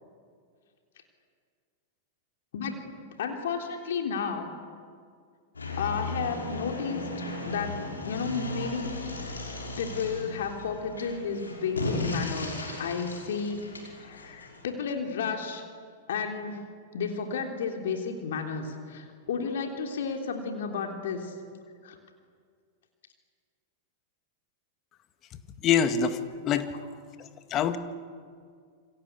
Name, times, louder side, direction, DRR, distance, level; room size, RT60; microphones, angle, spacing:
voice 1, 3.2-4.5 5.8-7.0 7.5-9.0 9.8-15.6 16.1-21.4 21.8-22.0 26.5-26.6, left 5 dB, 65° left, 3 dB, 3.5 m, -32 dB
sound 1, 5.5-14.7, left 2 dB, 85° left, 5.9 m, -36 dB
voice 2, 25.6-26.7 27.2-27.8, left 7 dB, 35° left, 9 dB, 2.1 m, -26 dB
28.0 x 25.0 x 8.5 m, 2.1 s
figure-of-eight pair, 95°, 0 cm